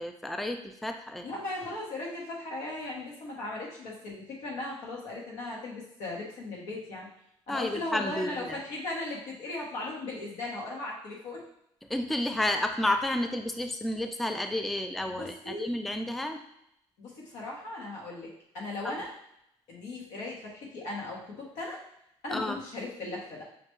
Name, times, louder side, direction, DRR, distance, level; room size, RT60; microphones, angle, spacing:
voice 1, 0.0-1.3 7.5-8.6 11.9-16.4 22.3-22.6, left 1 dB, ahead, 6 dB, 0.4 m, -31 dB
voice 2, 1.2-7.1 7.5-11.4 15.2-15.7 17.0-19.1 19.7-21.8 22.2-23.4, left 2 dB, 85° left, -3 dB, 1.2 m, -37 dB
5.7 x 2.3 x 3.1 m, 0.78 s
supercardioid pair, 80°, 12 cm